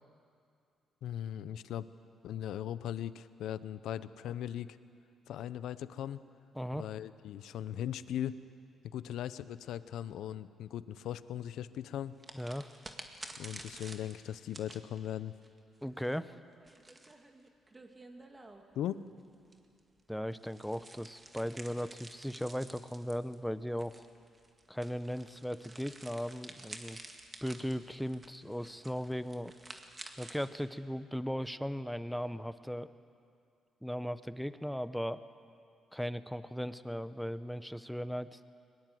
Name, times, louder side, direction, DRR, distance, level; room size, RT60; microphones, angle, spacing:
voice 1, 1.0-1.9 2.2-4.8 5.3-6.2 6.7-8.4 8.8-12.2 13.4-15.4 18.8-19.1, left 11 dB, 80° left, 14 dB, 0.7 m, -39 dB
voice 2, 6.5-6.9 12.3-12.8 15.8-16.3 20.1-24.1 24.7-27.0 27.4-29.5 30.2-32.9 33.8-35.2 35.9-38.4, equal, ahead, 13 dB, 0.8 m, -37 dB
sound 1, 12.2-18.8 19.4-30.5, right 2 dB, 25° right, 2.0 m, -51 dB
22.0 x 21.0 x 7.8 m, 2.4 s
cardioid pair, 90°, 0 cm